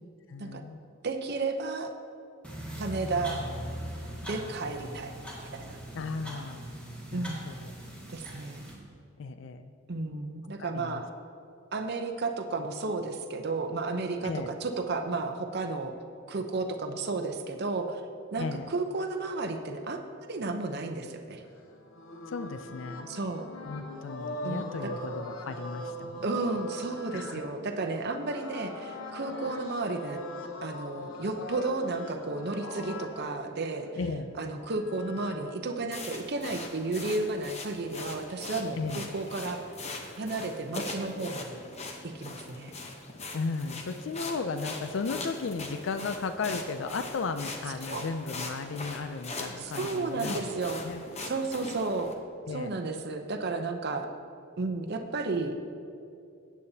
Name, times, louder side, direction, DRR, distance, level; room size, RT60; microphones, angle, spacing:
voice 1, 0.3-0.8 5.9-6.7 7.1-7.5 9.2-9.7 10.6-11.0 14.2-14.5 18.4-18.7 22.3-23.1 23.7-26.2 27.1-27.4 34.0-34.3 38.8-39.0 43.3-50.5 50.8-51.0 52.5-52.8, left 4 dB, 65° left, 10 dB, 0.4 m, -35 dB
voice 2, 1.0-1.9 2.8-3.4 4.2-5.1 5.5-5.8 7.1-7.4 8.1-8.7 9.9-11.1 11.7-15.9 16.3-18.0 18.3-21.4 23.1-23.5 24.4-24.9 26.2-30.2 30.6-33.9 34.4-39.6 40.2-41.6 42.1-42.7 47.9-48.0 49.6-50.8 51.2-52.1 52.5-54.1 54.6-55.5, right 3 dB, 55° right, 5 dB, 0.7 m, -33 dB
sound 1, 2.4-8.7, equal, 5° left, 2.0 m, -40 dB
sound 2, 21.4-33.2 34.3-35.4, left 1 dB, 85° left, 0.9 m, -41 dB
sound 3, 35.9-52.1, left 2 dB, 35° left, 0.9 m, -41 dB
15.5 x 8.5 x 2.8 m, 2.5 s
head